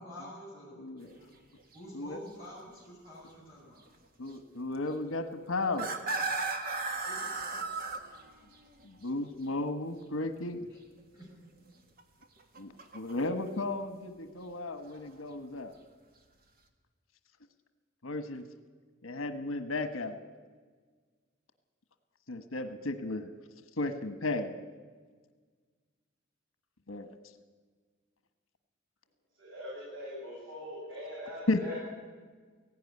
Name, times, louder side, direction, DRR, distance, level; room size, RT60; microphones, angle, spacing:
voice 1, 0.0-1.4 1.7-3.8 7.0-7.8 10.7-10.8 11.1-11.3, equal, 20° right, -6 dB, 7.7 m, -49 dB
sound 1, 1.0-1.2 1.6-1.8 2.3-2.4 4.3-4.4 5.6-8.8 12.0-13.5 14.8-15.1, right 3 dB, 45° right, 1.7 m, -35 dB
voice 2, 4.2-5.9 8.8-10.6 12.6-15.7 18.0-18.4 19.0-20.2 22.3-23.3 23.8-24.5 26.9-27.1 31.5-31.7, left 2 dB, 80° left, 9 dB, 1.3 m, -34 dB
voice 3, 29.4-31.7, left 1 dB, 65° right, -6 dB, 7.9 m, -42 dB
17.5 x 16.0 x 9.7 m, 1.5 s
head